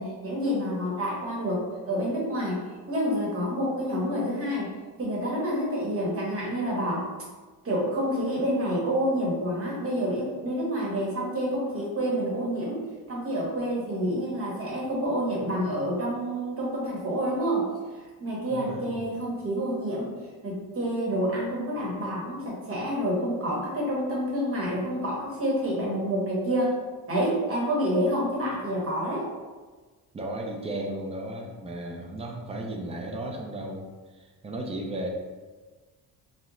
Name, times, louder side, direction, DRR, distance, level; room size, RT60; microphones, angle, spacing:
voice 1, 0.0-7.1 7.6-20.1 20.4-26.8 27.1-29.3, equal, 35° right, -4 dB, 1.0 m, -28 dB
voice 2, 18.5-18.9 30.1-35.1, right 1 dB, 15° right, 0 dB, 0.4 m, -35 dB
2.9 x 2.1 x 3.7 m, 1.3 s
cardioid pair, 130°, 38 cm